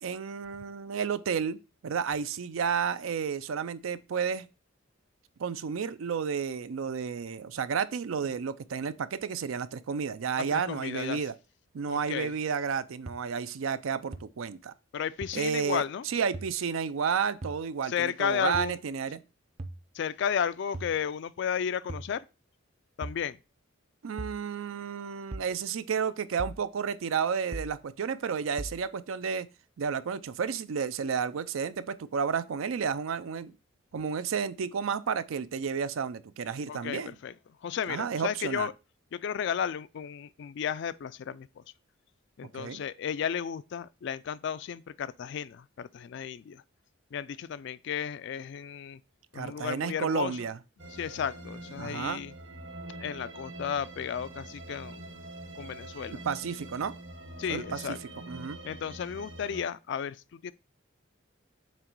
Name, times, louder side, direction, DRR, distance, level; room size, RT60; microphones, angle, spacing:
voice 1, 0.0-4.5 5.4-11.3 11.7-14.7 15.3-19.2 24.0-29.5 29.8-33.5 33.9-37.1 37.9-38.7 42.6-42.8 49.3-50.6 51.8-52.2 56.2-56.9 57.5-57.8 58.3-58.6, right 6 dB, 80° right, 0.4 m, -31 dB
voice 2, 10.5-11.2 11.9-12.3 14.9-16.0 17.9-18.8 19.9-22.2 23.0-23.4 36.7-37.3 37.6-38.7 39.1-41.6 42.4-46.6 47.1-49.0 49.3-50.4 51.0-52.3 53.0-55.1 55.6-56.2 57.4-58.0 58.6-60.5, left 8 dB, 60° left, 0.3 m, -33 dB
sound 1, 13.1-13.2 14.1-14.2 15.2-15.3 16.3-16.5 17.4-17.6 18.5-18.7 19.6-19.8 20.7-21.0 21.9-22.1 23.0-23.2 24.2-24.4 25.3-25.5 26.4-26.6 27.5-27.7 28.6-28.8, right 1 dB, 35° right, 0.5 m, -38 dB
sound 2, 50.8-59.6, right 1 dB, 60° right, 1.1 m, -44 dB
7.4 x 3.0 x 4.5 m
head